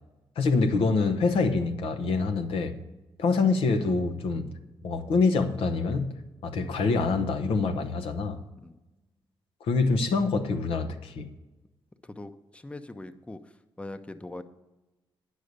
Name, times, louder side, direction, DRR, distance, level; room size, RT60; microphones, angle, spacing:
voice 1, 0.4-2.8 3.2-4.5 4.8-6.1 6.4-8.4 9.6-11.3, left 4 dB, 80° left, 0.8 m, -25 dB
voice 2, 12.0-14.4, left 2 dB, 10° left, 0.6 m, -42 dB
9.5 x 6.5 x 6.6 m
cardioid pair, 70°, 9 cm